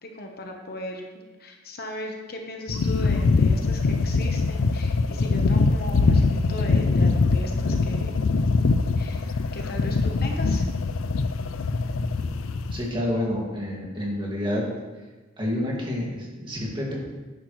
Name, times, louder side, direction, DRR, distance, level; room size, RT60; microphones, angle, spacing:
voice 1, 0.0-1.1 1.4-8.1 9.0-9.3 9.5-10.7, left 1 dB, 50° left, 2 dB, 1.2 m, -37 dB
sound 1, 2.7-12.9, left 3 dB, 85° left, 0.5 m, -23 dB
voice 2, 12.7-14.6 15.4-17.0, left 1 dB, 25° right, -3 dB, 2.3 m, -28 dB
10.0 x 10.0 x 3.3 m, 1.3 s
head